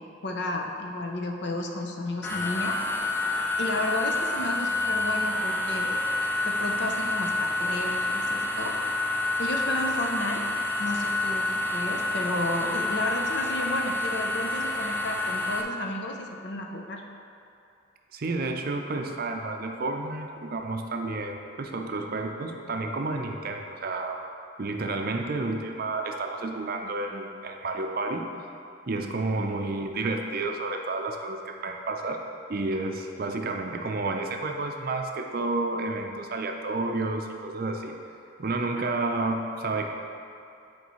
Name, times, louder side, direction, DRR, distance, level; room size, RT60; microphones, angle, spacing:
voice 1, 0.0-2.8 3.6-6.0 6.4-8.8 9.4-10.4 10.8-17.0 38.7-38.9, left 1 dB, 60° left, 2 dB, 0.6 m, -32 dB
sound 1, 2.2-15.6, left 2 dB, 10° left, 0.4 m, -28 dB
voice 2, 18.1-24.2 24.6-28.3 28.9-32.2 32.5-37.9 38.4-39.9, right 2 dB, 50° right, 3 dB, 0.5 m, -30 dB
9.6 x 4.5 x 3.1 m, 2.7 s
head